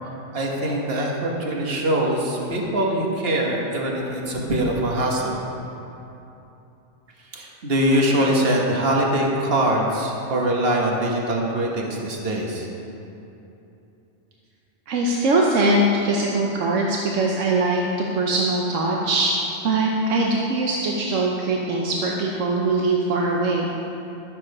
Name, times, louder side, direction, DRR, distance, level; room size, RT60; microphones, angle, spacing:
voice 1, 0.3-5.4 7.3-12.7, right 1 dB, 55° right, -1 dB, 1.6 m, -23 dB
voice 2, 14.9-17.8 18.1-19.3 19.6-23.7, right 2 dB, 85° right, -1 dB, 1.2 m, -21 dB
12.0 x 7.6 x 5.3 m, 2.9 s
omnidirectional pair, 1.3 m